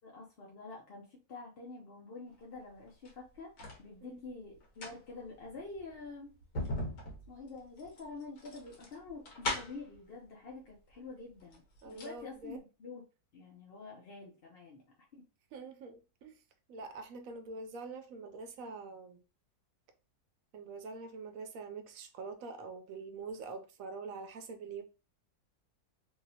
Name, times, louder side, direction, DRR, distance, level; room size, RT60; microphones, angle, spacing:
voice 1, 0.0-6.4 7.3-13.0 13.3-14.8 15.1-15.2, left 3 dB, 50° left, 0.8 m, -47 dB
sound 1, 2.9-3.8 4.6-10.0 10.9-11.0 11.4-12.2 12.5-12.6, left 1 dB, 75° left, 1.5 m, -40 dB
voice 2, 11.8-12.6 15.5-16.4 16.7-19.2 20.5-24.8, right 4 dB, 70° right, 0.9 m, -45 dB
3.2 x 2.8 x 2.7 m
omnidirectional pair, 1.6 m